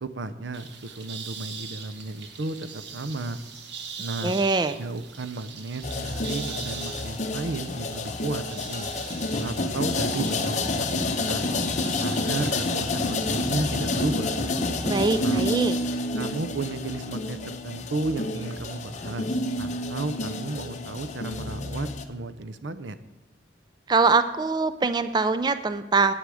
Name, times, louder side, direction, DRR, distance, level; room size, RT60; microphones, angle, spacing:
voice 1, 0.0-3.4 4.0-4.4 4.8-8.9 9.4-11.5 12.0-14.5 15.2-15.5 16.2-23.0, right 3 dB, 85° right, 12 dB, 0.6 m, -33 dB
sound 1, 0.5-13.4, right 6 dB, 70° right, 1.2 m, -42 dB
voice 2, 4.2-4.8 14.8-15.8 23.9-26.1, right 4 dB, 25° right, 12 dB, 0.3 m, -23 dB
sound 2, 5.8-22.0, left 2 dB, 40° left, 0.8 m, -29 dB
9.2 x 8.2 x 6.2 m, 1.0 s
head